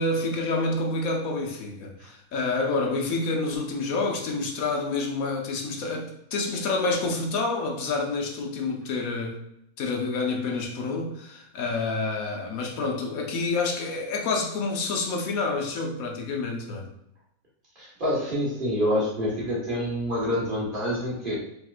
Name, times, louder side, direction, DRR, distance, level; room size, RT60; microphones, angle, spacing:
voice 1, 0.0-9.4 9.8-16.9, left 3 dB, 80° left, 1 dB, 1.3 m, -28 dB
voice 2, 17.7-21.4, equal, 40° right, -5 dB, 1.6 m, -27 dB
5.1 x 3.5 x 2.4 m, 0.79 s
omnidirectional pair, 1.5 m